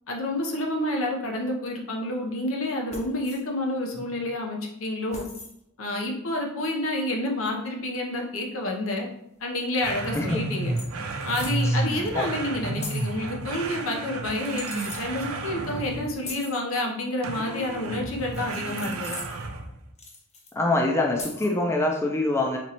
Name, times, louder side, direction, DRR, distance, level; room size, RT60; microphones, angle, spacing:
voice 1, 0.1-5.2 5.8-9.1 9.4-10.7 11.2-19.2, left 1 dB, 80° left, 1 dB, 0.8 m, -29 dB
sound 1, 2.9-3.4 5.1-5.5 7.5-7.6 9.9-10.0 10.2-10.4 10.8-11.7 12.8-13.2 14.3-15.0 16.2-16.6 18.3-19.5 20.0-20.5 21.2-21.5, left 3 dB, 30° left, 0.8 m, -40 dB
sound 2, 9.8-16.3 17.2-19.8, right 2 dB, 85° right, 0.5 m, -31 dB
voice 2, 11.6-12.3 20.6-22.6, left 2 dB, 15° left, 1 dB, 0.4 m, -25 dB
4.2 x 3.1 x 2.9 m, 0.76 s
head